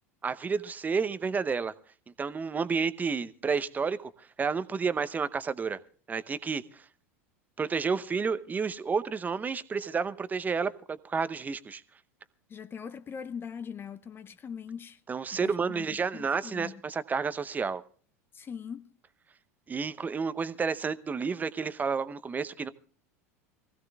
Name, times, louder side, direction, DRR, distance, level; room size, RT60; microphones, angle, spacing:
voice 1, 0.2-1.7 2.2-4.1 4.4-5.8 6.1-6.8 7.6-11.8 15.1-17.8 19.7-22.7, right 5 dB, 20° right, 0.8 m, -30 dB
voice 2, 12.5-15.0 15.3-16.8 18.3-18.9, left 7 dB, 25° left, 0.7 m, -41 dB
23.5 x 16.0 x 2.3 m
hypercardioid pair, 85°, 8 cm